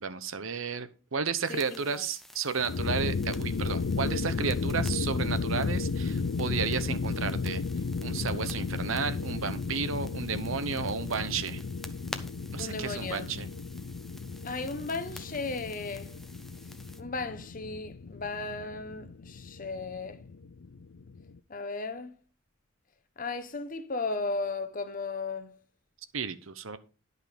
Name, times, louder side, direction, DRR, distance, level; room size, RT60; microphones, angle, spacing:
voice 1, 0.0-7.6 8.0-11.6 12.5-13.5 26.1-26.8, right 5 dB, 85° right, 0.9 m, -33 dB
voice 2, 1.5-2.1 12.6-13.3 14.4-16.2 17.0-20.2 21.5-22.1 23.2-25.6, left 3 dB, 40° left, 0.9 m, -35 dB
sound 1, 1.5-17.0, left 1 dB, ahead, 0.7 m, -50 dB
sound 2, 2.6-21.4, left 4 dB, 90° left, 0.5 m, -34 dB
11.0 x 5.5 x 5.0 m
head